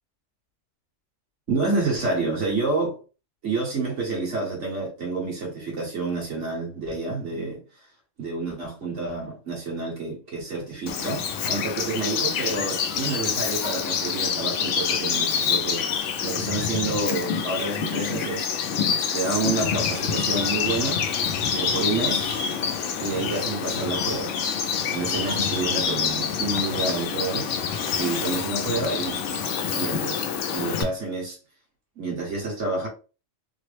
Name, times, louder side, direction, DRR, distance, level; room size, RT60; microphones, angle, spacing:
voice 1, 1.5-3.0 3.4-7.6 8.2-15.9 16.2-18.5 19.1-21.0 21.5-22.4 23.0-24.3 24.9-27.7 28.0-29.3 29.7-31.4 32.0-32.9, right 3 dB, 75° right, 1.8 m, -29 dB
Bird vocalization bird call bird song, 10.9-30.8, left 7 dB, 80° left, 0.9 m, -26 dB
3.6 x 2.0 x 3.2 m
omnidirectional pair, 1.3 m